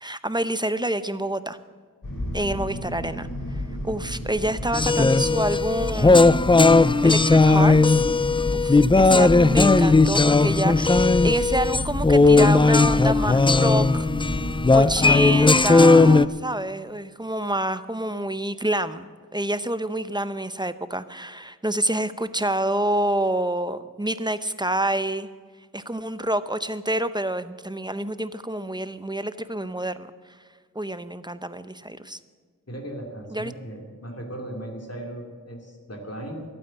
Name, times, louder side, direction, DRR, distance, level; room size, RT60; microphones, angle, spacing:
voice 1, 0.0-1.6 2.3-6.5 7.0-8.0 8.5-25.3 25.7-30.4 30.7-32.2 33.3-33.5, right 1 dB, 15° right, 12 dB, 0.7 m, -28 dB
sound 1, 2.0-15.5, equal, 80° left, 2.9 m, -31 dB
sound 2, 4.7-16.3, left 3 dB, 15° left, 0.3 m, -17 dB
voice 2, 32.7-36.4, right 1 dB, 45° left, 1 dB, 2.7 m, -37 dB
12.5 x 8.9 x 8.9 m, 1.6 s
wide cardioid pair, 50°, 33 cm